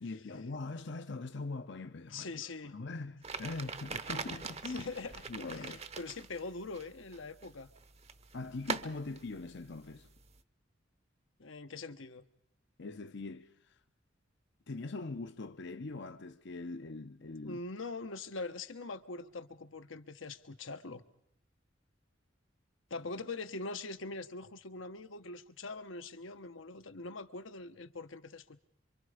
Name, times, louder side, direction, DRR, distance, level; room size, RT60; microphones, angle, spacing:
voice 1, 0.0-2.4 2.7-4.9 5.3-5.9 8.3-10.1 12.8-13.8 14.7-17.6, left 3 dB, 65° left, 0.8 m, -42 dB
voice 2, 2.1-2.8 4.7-7.7 11.4-12.2 17.4-21.0 22.9-28.6, left 3 dB, 80° left, 1.2 m, -43 dB
sound 1, 3.2-10.4, right 5 dB, 35° right, 0.8 m, -44 dB
27.5 x 25.0 x 5.0 m
head